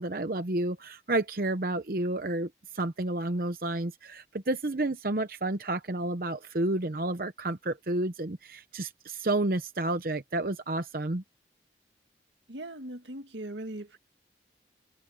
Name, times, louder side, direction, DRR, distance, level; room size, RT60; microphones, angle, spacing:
voice 1, 0.0-11.2, right 2 dB, 50° right, 0.8 m, -30 dB
voice 2, 12.5-14.0, right 1 dB, 85° right, 2.0 m, -39 dB
head